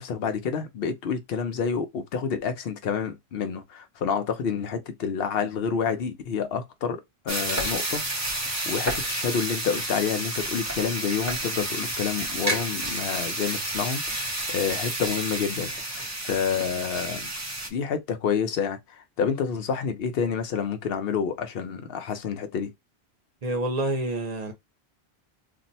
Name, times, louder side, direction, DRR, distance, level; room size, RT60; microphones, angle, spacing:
voice 1, 0.0-17.3 17.7-22.7, left 6 dB, 65° left, 0.8 m, -29 dB
sound 1, 7.3-17.7, right 1 dB, 20° right, 0.4 m, -30 dB
voice 2, 23.4-24.5, right 2 dB, 40° right, 0.8 m, -27 dB
2.6 x 2.1 x 4.0 m
omnidirectional pair, 1.1 m